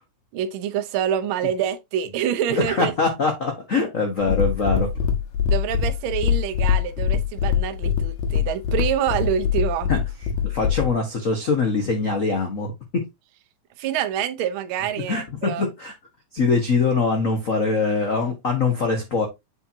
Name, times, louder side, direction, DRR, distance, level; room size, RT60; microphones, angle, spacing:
voice 1, 0.3-2.9 5.5-9.9 13.8-15.6, right 9 dB, 80° right, 1.1 m, -26 dB
voice 2, 2.5-4.9 9.9-10.0 10.4-13.0 15.1-15.9 16.3-19.3, left 4 dB, 65° left, 0.7 m, -23 dB
sound 1, 4.2-10.9, left 8 dB, 80° left, 2.4 m, -23 dB
7.9 x 4.4 x 2.8 m
omnidirectional pair, 3.3 m